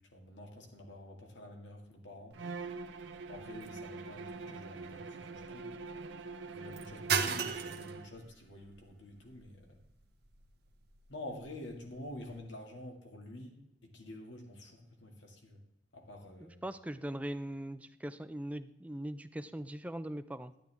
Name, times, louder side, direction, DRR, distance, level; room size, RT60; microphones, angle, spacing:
voice 1, 0.0-2.4 3.3-5.7 6.5-9.8 11.1-15.6 15.9-16.6, left 1 dB, 85° left, 2 dB, 2.1 m, -48 dB
sound 1, 2.3-12.4, right 6 dB, 60° right, 0.9 m, -41 dB
Bowed string instrument, 2.3-8.2, right 4 dB, 85° right, 0.7 m, -44 dB
voice 2, 16.4-20.5, right 1 dB, 10° right, 11 dB, 0.4 m, -40 dB
10.5 x 9.9 x 3.5 m, 0.82 s
head